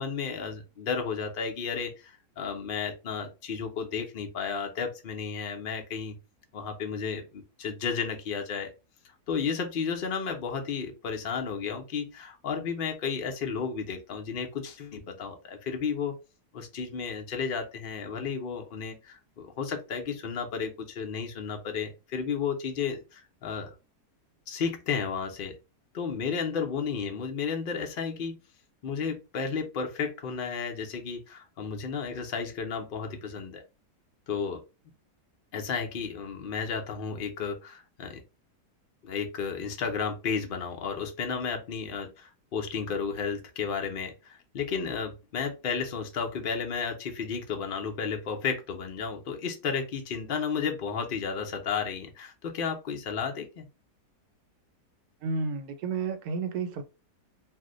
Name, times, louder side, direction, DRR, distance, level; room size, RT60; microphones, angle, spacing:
voice 1, 0.0-6.2 6.5-8.7 9.0-16.1 16.5-23.7 24.5-25.6 25.9-28.4 28.8-33.6 34.3-34.6 35.5-38.2 39.0-53.7, left 6 dB, 70° left, 0.5 m, -33 dB
voice 2, 55.2-56.8, right 4 dB, 75° right, 1.1 m, -31 dB
2.6 x 2.1 x 3.7 m
omnidirectional pair, 1.7 m